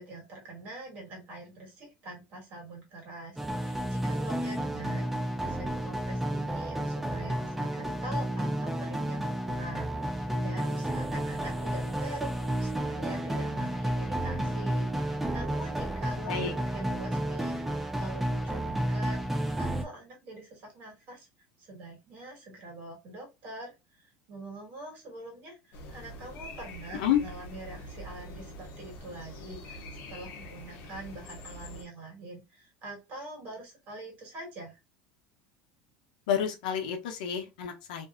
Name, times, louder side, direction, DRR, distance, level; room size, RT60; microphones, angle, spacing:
voice 1, 0.0-21.3 21.6-29.8 30.1-34.8, right 2 dB, 45° right, 1.5 m, -44 dB
sound 1, 3.4-19.8, right 1 dB, 5° right, 0.4 m, -31 dB
sound 2, 25.7-31.8, equal, 55° left, 0.8 m, -44 dB
voice 2, 36.3-38.1, left 9 dB, 90° left, 0.7 m, -29 dB
2.6 x 2.4 x 2.4 m
supercardioid pair, 145°, 4 cm